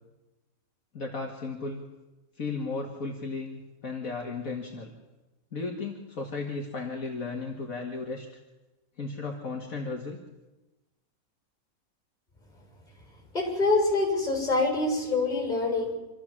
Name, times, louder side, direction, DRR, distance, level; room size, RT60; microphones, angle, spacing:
voice 1, 0.9-1.8 2.4-4.9 5.5-8.3 9.0-10.2, left 3 dB, 70° left, 0 dB, 2.4 m, -35 dB
voice 2, 13.3-15.9, left 3 dB, 30° left, 0 dB, 7.0 m, -25 dB
26.0 x 14.0 x 7.4 m, 1.1 s
omnidirectional pair, 1.5 m